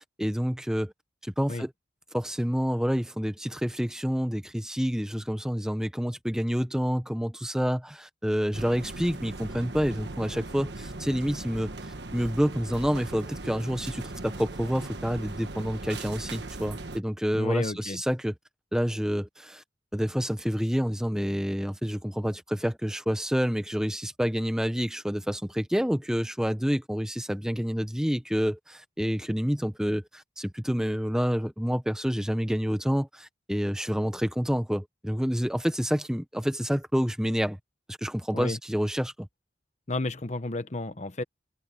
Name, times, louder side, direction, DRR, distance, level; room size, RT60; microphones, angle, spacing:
voice 1, 0.2-0.9 1.2-1.7 2.1-11.7 12.1-18.3 18.7-19.6 19.9-37.6 37.9-39.3, equal, 5° right, 1.1 m, -28 dB
sound 1, 8.5-17.0, right 2 dB, 65° right, 1.4 m, -39 dB
voice 2, 17.3-18.0 38.3-38.6 39.9-41.2, left 2 dB, 40° left, 1.1 m, -32 dB
head